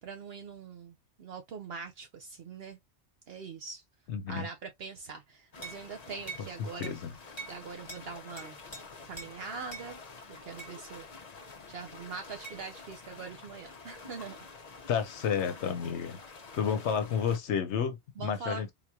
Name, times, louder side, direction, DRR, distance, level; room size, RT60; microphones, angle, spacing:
voice 1, 0.0-2.8 3.3-3.8 4.3-7.0 7.5-8.6 9.0-10.0 10.4-11.0 11.7-14.4 18.2-18.7, right 5 dB, 65° right, 0.8 m, -43 dB
voice 2, 4.1-4.5 6.6-7.1 14.9-16.2 16.5-18.7, left 7 dB, 75° left, 1.0 m, -31 dB
sound 1, 5.5-17.4, left 4 dB, 40° left, 0.7 m, -49 dB
sound 2, 5.6-5.8 6.3-6.5 6.8-7.0 7.4-7.6 7.9-8.0 8.4-8.8 9.2-9.3 9.7-9.9 10.6-10.8 12.4-12.6, right 3 dB, 25° left, 1.2 m, -43 dB
3.9 x 2.9 x 2.3 m
omnidirectional pair, 1.2 m